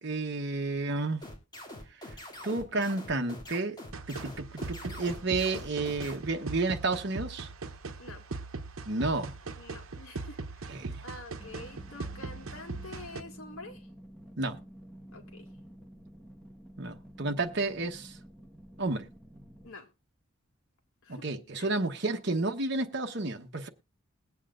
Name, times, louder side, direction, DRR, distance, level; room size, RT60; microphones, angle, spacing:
voice 1, 0.0-1.2 2.4-3.8 4.1-7.5 8.9-9.3 10.7-11.0 14.4-14.6 16.8-18.2 18.8-19.1 21.1-23.7, right 3 dB, 55° right, 1.1 m, -31 dB
sound 1, 1.2-6.2, left 1 dB, 20° left, 2.6 m, -44 dB
sound 2, 3.9-13.2, right 3 dB, 75° right, 1.0 m, -40 dB
voice 2, 9.6-13.9 15.1-15.5 19.6-19.9 21.0-21.3 21.6-21.7 22.1-22.2, left 2 dB, 80° left, 2.2 m, -47 dB
sound 3, 11.4-19.7, right 1 dB, ahead, 1.3 m, -50 dB
21.0 x 8.3 x 2.5 m
head